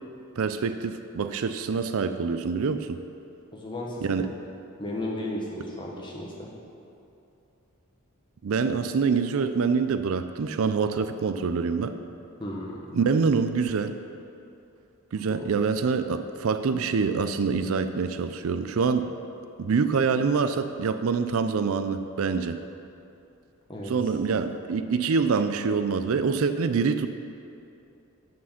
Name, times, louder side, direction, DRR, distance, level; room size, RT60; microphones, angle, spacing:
voice 1, 0.4-3.0 4.0-4.3 8.4-11.9 12.9-13.9 15.1-19.1 19.6-22.6 23.9-27.1, right 5 dB, 70° right, 10 dB, 0.4 m, -25 dB
voice 2, 3.5-4.1 4.8-6.6 12.4-12.8 15.3-15.4 23.7-23.9, left 1 dB, 20° left, -3 dB, 1.4 m, -34 dB
8.3 x 7.6 x 5.7 m, 2.7 s
head